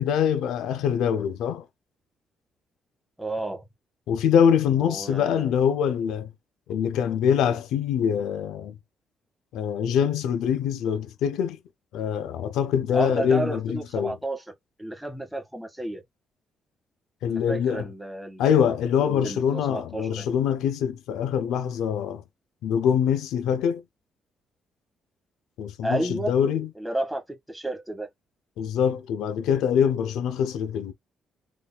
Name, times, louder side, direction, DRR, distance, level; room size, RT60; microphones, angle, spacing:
voice 1, 0.0-1.7 4.1-6.3 6.7-8.8 9.5-11.6 11.9-14.2 17.2-17.9 18.4-22.2 22.6-23.8 25.6-26.7 28.6-30.9, left 8 dB, 90° left, 0.5 m, -24 dB
voice 2, 3.2-3.6 4.8-5.5 12.9-14.4 14.8-16.0 17.3-18.6 19.0-20.3 25.8-26.4 26.8-28.1, right 1 dB, 5° right, 1.8 m, -31 dB
3.9 x 3.2 x 2.4 m
cardioid pair, 90°, 0 cm